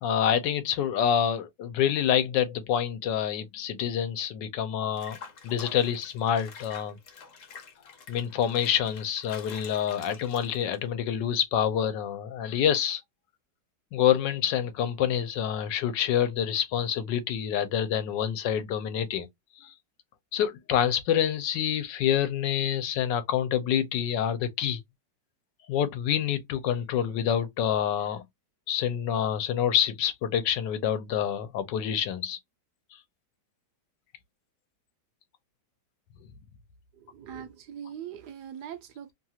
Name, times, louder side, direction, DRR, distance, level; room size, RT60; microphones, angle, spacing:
voice 1, 0.0-5.2 5.4-7.0 8.1-13.0 13.9-19.3 19.6-19.7 20.3-24.8 25.7-28.2 28.7-32.4, left 9 dB, 85° left, 1.3 m, -27 dB
Water / Bathtub (filling or washing), 5.0-10.9, left 5 dB, 55° left, 1.1 m, -47 dB
voice 2, 36.9-39.1, right 9 dB, 75° right, 1.2 m, -41 dB
3.2 x 2.4 x 2.7 m
omnidirectional pair, 1.9 m